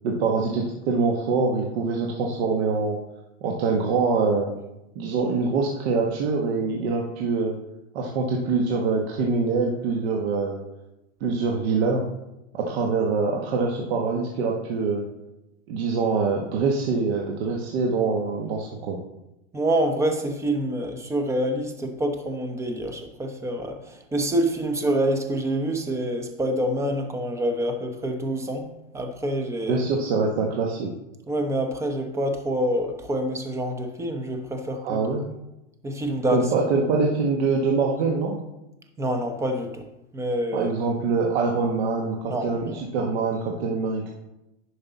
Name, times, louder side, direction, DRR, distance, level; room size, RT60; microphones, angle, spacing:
voice 1, 0.0-3.0 3.4-4.5 4.9-7.6 7.9-10.6 11.2-12.1 12.5-15.1 15.7-19.0 29.7-30.9 34.8-35.3 36.3-38.4 40.5-44.1, right 4 dB, 55° right, 1.2 m, -24 dB
voice 2, 19.5-29.8 31.3-35.2 35.8-36.5 39.0-39.8 40.1-40.7 42.2-42.8, right 1 dB, 5° right, 0.7 m, -26 dB
10.0 x 5.4 x 4.0 m
hypercardioid pair, 135°, 39 cm